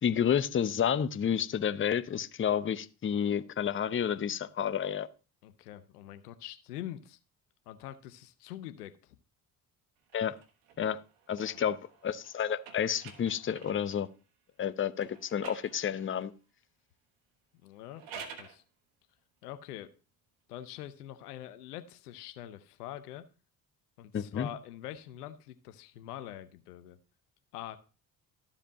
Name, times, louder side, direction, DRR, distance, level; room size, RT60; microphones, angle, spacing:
voice 1, 0.0-5.1 10.1-10.3 10.8-11.0 11.3-11.8 12.0-14.1 14.6-16.3 24.1-24.5, left 8 dB, 25° left, 13 dB, 0.7 m, -30 dB
voice 2, 5.4-7.2 7.7-9.2 11.5-11.7 17.6-18.6 19.4-19.9 20.5-23.3 24.0-27.0 27.5-27.8, left 12 dB, 90° left, 12 dB, 0.7 m, -44 dB
sound 1, 10.1-14.1 15.0-16.3 17.8-18.6, right 6 dB, 70° right, 1.4 m, -50 dB
14.0 x 5.0 x 2.7 m, 0.34 s
hypercardioid pair, 55°, 45 cm